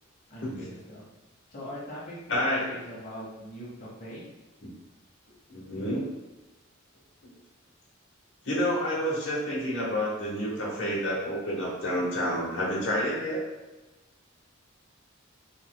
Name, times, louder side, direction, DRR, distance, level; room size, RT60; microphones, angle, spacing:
voice 1, 0.3-1.1 1.5-4.3, equal, 40° left, -7 dB, 1.0 m, -41 dB
voice 2, 2.3-2.6 5.5-6.0 8.4-13.4, equal, 60° left, -5 dB, 1.1 m, -29 dB
4.1 x 3.1 x 2.3 m, 1.1 s
head